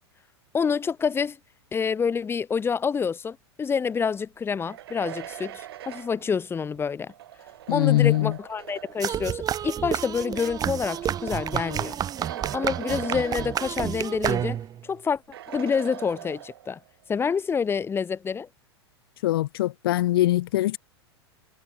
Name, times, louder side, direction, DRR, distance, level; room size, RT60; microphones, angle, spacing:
voice 1, 0.5-1.4 1.7-7.1 7.7-12.0 12.5-15.2 15.5-16.8 17.1-18.5, left 6 dB, 15° left, 1.1 m, -27 dB
sound 1, 4.5-9.2 10.1-14.3 14.6-14.7 15.3-16.9, right 12 dB, 60° right, 2.8 m, -41 dB
voice 2, 7.7-8.3 19.2-20.8, left 15 dB, 60° left, 0.7 m, -22 dB
sound 2, 9.0-14.8, right 10 dB, 25° right, 2.1 m, -30 dB
figure-of-eight pair, 90°, 14 cm